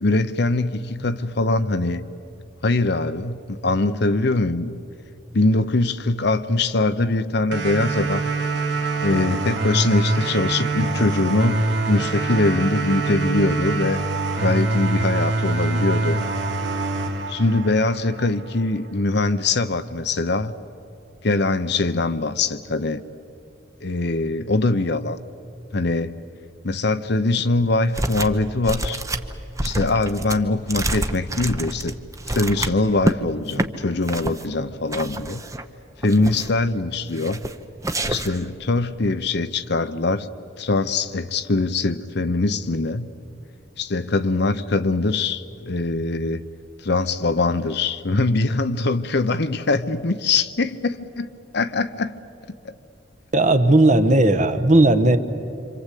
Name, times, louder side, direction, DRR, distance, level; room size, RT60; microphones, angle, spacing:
voice 1, 0.0-2.0 2.6-4.7 5.3-8.2 9.0-14.0 14.4-16.2 17.3-20.5 21.2-23.0 23.8-25.2 25.7-26.1 26.6-29.0 29.6-31.9 32.3-35.4 36.0-37.4 38.1-40.3 40.6-43.1 43.8-46.4 46.8-52.2, left 2 dB, 60° left, 0.8 m, -22 dB
sound 1, 7.5-18.5, right 2 dB, 65° right, 2.1 m, -24 dB
sound 2, 27.9-28.4 28.6-33.2 33.5-33.7 34.1-34.4 34.9-35.6 36.0-36.6 37.1-37.5 37.8-38.5, right 1 dB, 15° right, 0.9 m, -27 dB
voice 2, 53.3-55.2, right 2 dB, 40° right, 1.2 m, -16 dB
27.0 x 26.0 x 8.4 m
head